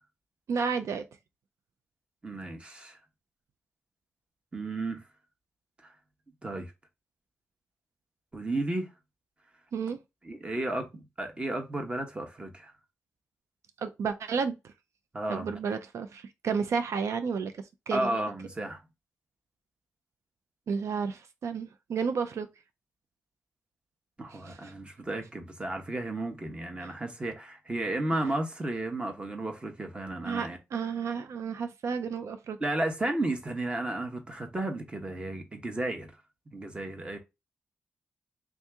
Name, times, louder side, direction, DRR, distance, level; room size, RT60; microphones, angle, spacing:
voice 1, 0.5-1.0 9.7-10.0 13.8-14.7 15.3-18.2 20.7-22.5 24.3-24.7 26.8-26.9 30.2-32.6, right 5 dB, 80° right, 0.4 m, -32 dB
voice 2, 2.2-3.0 4.5-5.0 6.4-6.7 8.3-8.9 10.2-12.7 15.1-15.5 17.9-18.8 24.2-30.6 32.6-36.1 36.5-37.2, right 2 dB, 20° right, 1.0 m, -33 dB
3.6 x 2.8 x 3.4 m
wide cardioid pair, 130°, 5 cm